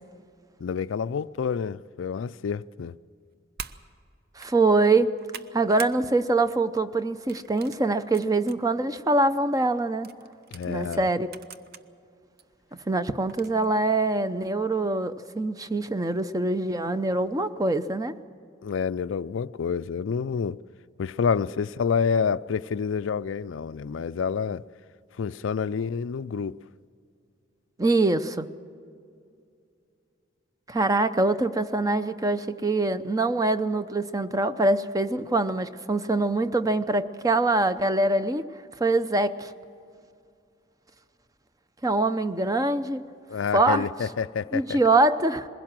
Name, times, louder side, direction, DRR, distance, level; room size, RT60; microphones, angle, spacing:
voice 1, 0.6-2.9 10.5-11.1 18.6-20.6 21.0-24.6 25.2-26.6 43.3-44.8, left 6 dB, 75° left, 0.4 m, -28 dB
sound 1, 3.6-3.8 4.3-4.5 4.9-6.0 6.4-6.6 7.3-8.6 9.1-9.2 10.0-11.8 12.4-12.5 13.3-13.7, right 7 dB, 55° right, 0.7 m, -43 dB
voice 2, 4.4-5.1 5.5-10.1 10.6-11.3 12.9-18.1 27.8-28.5 30.7-38.4 38.8-39.5 41.8-43.0 43.5-43.8 44.5-45.5, right 2 dB, 20° right, 0.6 m, -24 dB
21.0 x 16.5 x 7.5 m
head